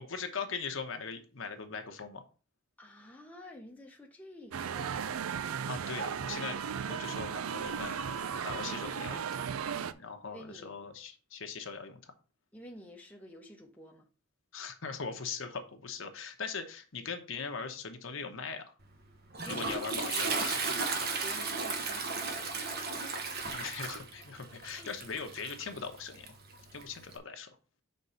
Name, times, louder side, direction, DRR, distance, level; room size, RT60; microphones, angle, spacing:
voice 1, 0.1-2.2 5.7-6.6 6.9-8.0 8.4-9.4 9.9-12.1 14.5-18.6 19.5-20.7 23.5-26.4 26.7-27.5, left 5 dB, 65° left, 1.0 m, -40 dB
voice 2, 2.8-5.2 10.2-10.8 12.5-14.1 19.4-19.9 21.2-23.0 23.4-23.7 24.7-24.9, left 1 dB, 5° left, 0.8 m, -51 dB
sound 1, 4.5-9.9, right 7 dB, 85° right, 0.4 m, -36 dB
Toilet flush, 18.8-27.2, right 4 dB, 50° right, 1.0 m, -36 dB
5.4 x 3.7 x 5.6 m
head